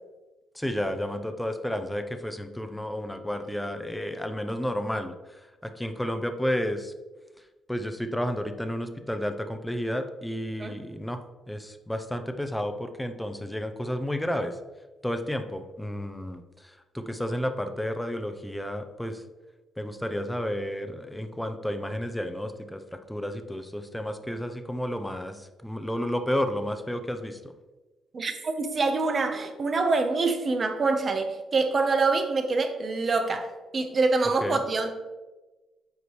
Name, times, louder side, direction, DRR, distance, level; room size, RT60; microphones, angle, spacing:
voice 1, 0.5-6.9 7.7-11.2 11.5-14.6 15.0-19.2 19.8-27.4 34.4-34.6, equal, 5° left, 8 dB, 0.6 m, -31 dB
voice 2, 28.1-33.5 33.7-34.9, right 3 dB, 40° right, 6 dB, 0.9 m, -25 dB
8.0 x 4.7 x 3.1 m, 1.2 s
cardioid pair, 90°, 0 cm